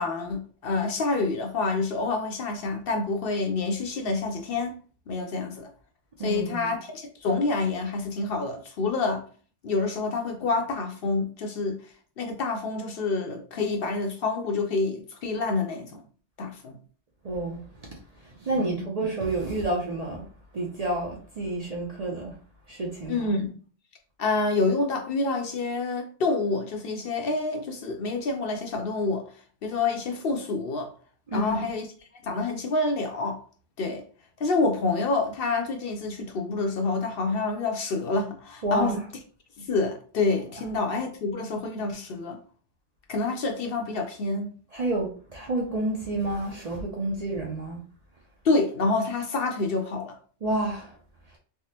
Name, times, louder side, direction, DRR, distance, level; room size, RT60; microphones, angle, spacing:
voice 1, 0.0-4.7 5.1-5.7 6.2-9.3 9.6-11.8 12.2-16.0 16.4-16.8 18.5-18.9 23.1-23.6 24.2-29.2 29.6-30.9 31.3-31.8 32.2-33.4 33.8-34.0 34.4-39.0 39.6-42.4 43.1-44.5 48.4-50.2, left 3 dB, 65° left, 0.7 m, -27 dB
voice 2, 6.2-6.7 17.2-20.2 20.5-22.3 22.7-23.3 31.3-31.7 38.6-39.0 44.7-47.8 50.4-51.0, right 2 dB, 45° right, 0.5 m, -29 dB
3.4 x 2.0 x 2.8 m
omnidirectional pair, 1.2 m